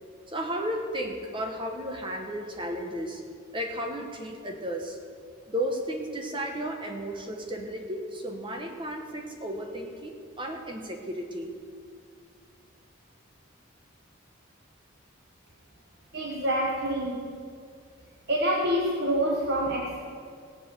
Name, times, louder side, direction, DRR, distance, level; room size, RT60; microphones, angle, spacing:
voice 1, 0.3-3.2 3.5-5.0 5.5-11.5, equal, 25° right, 3 dB, 1.1 m, -34 dB
voice 2, 16.1-17.3 18.3-20.0, right 1 dB, 50° right, -1 dB, 1.2 m, -27 dB
18.0 x 7.4 x 6.9 m, 2.2 s
head